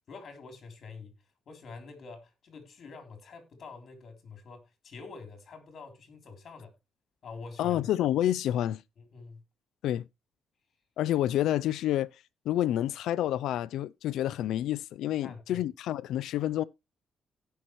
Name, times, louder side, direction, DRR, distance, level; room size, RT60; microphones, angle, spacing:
voice 1, 0.1-1.1 1.5-6.7 7.2-7.8 9.0-9.4 15.2-15.6, left 4 dB, 50° left, 3.5 m, -46 dB
voice 2, 7.6-8.8 9.8-10.0 11.0-12.1 12.5-16.6, left 12 dB, 80° left, 0.5 m, -28 dB
17.0 x 5.8 x 3.1 m
cardioid pair, 90°, 0 cm